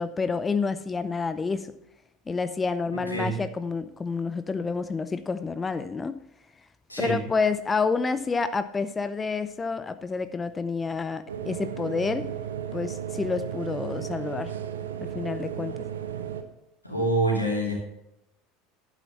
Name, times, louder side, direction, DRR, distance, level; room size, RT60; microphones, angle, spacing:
voice 1, 0.0-1.7 2.3-6.2 7.0-12.3 12.7-14.5 15.0-15.7, left 4 dB, 20° left, 12 dB, 0.5 m, -29 dB
voice 2, 2.9-3.4 6.9-7.2 16.8-17.7, right 1 dB, 90° left, -2 dB, 3.0 m, -26 dB
sound 1, 11.3-16.4, right 9 dB, 70° right, 0.8 m, -34 dB
11.0 x 9.1 x 4.1 m, 0.82 s
figure-of-eight pair, 75°, 0 cm